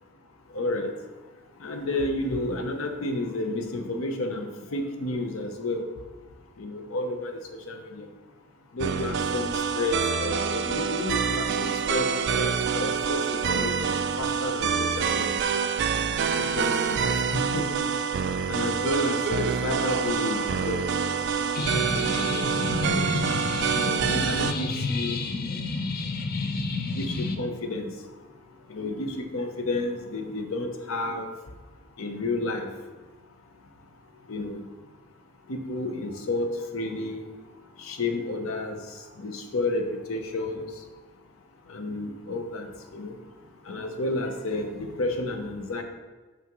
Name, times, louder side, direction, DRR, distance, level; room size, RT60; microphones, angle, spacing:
voice 1, 0.5-0.9 1.6-5.8 6.6-7.4 7.7-8.0 8.7-15.3 16.3-17.7 18.4-20.8 21.6-23.0 23.6-25.2 26.9-27.9 28.7-31.3 32.0-32.7 34.3-34.6 35.5-37.3 37.8-38.8 39.2-40.7 41.7-43.1 43.7-45.8, left 2 dB, 80° left, 5 dB, 0.7 m, -31 dB
sound 1, 8.8-24.5, right 6 dB, 55° right, 0.3 m, -26 dB
sound 2, 21.5-27.3, left 3 dB, 45° left, 0.5 m, -30 dB
5.9 x 5.8 x 3.0 m, 1.3 s
head